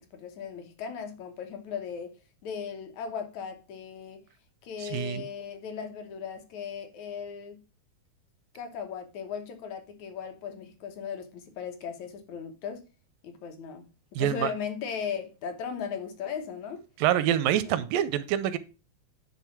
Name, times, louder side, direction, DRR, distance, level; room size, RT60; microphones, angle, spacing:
voice 1, 0.0-2.1 2.4-4.2 4.6-7.6 8.5-12.9 13.2-16.8 17.7-17.9, left 7 dB, 65° left, 2.2 m, -37 dB
voice 2, 4.8-5.3 14.2-14.5 17.0-18.6, right 11 dB, 80° right, 2.2 m, -26 dB
10.0 x 3.6 x 5.9 m
omnidirectional pair, 4.2 m